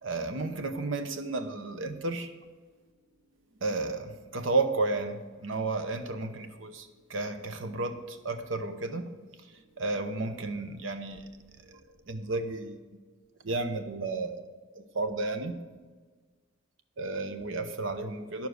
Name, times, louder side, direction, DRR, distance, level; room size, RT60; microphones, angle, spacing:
voice 1, 0.0-2.3 3.6-9.1 9.4-9.5 9.8-11.3 11.6-11.8 12.1-12.8 13.4-14.4 14.7-15.6 17.0-18.5, right 3 dB, 75° right, 8 dB, 0.9 m, -32 dB
10.5 x 7.1 x 6.4 m, 1.4 s
head